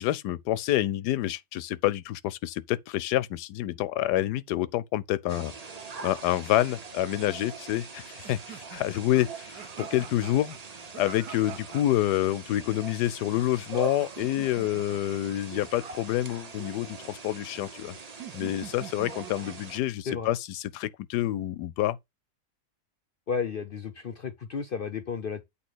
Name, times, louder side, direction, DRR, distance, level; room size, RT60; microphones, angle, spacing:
voice 1, 0.0-5.5 6.0-10.6 10.9-17.9 18.3-22.0, left 14 dB, 85° left, 1.2 m, -28 dB
sound 1, 5.3-19.8, right 5 dB, 35° right, 0.7 m, -42 dB
sound 2, 8.2-12.0 14.0-15.4 18.2-19.7, right 10 dB, 85° right, 1.3 m, -45 dB
voice 2, 23.3-25.4, left 6 dB, 60° left, 0.5 m, -33 dB
8.4 x 2.9 x 6.0 m
omnidirectional pair, 1.7 m